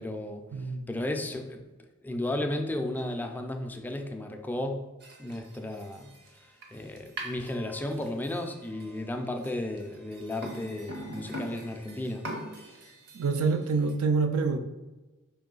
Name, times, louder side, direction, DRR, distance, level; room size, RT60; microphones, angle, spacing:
voice 1, 0.0-1.6 2.0-4.9 5.2-6.1 6.4-12.3 12.6-12.8, left 1 dB, 10° left, 4 dB, 0.3 m, -34 dB
voice 2, 0.5-0.8 13.1-14.6, right 4 dB, 85° right, 7 dB, 0.5 m, -26 dB
sound 1, 5.0-13.9, right 1 dB, 50° right, 0.8 m, -43 dB
4.6 x 3.0 x 3.8 m, 1.2 s
head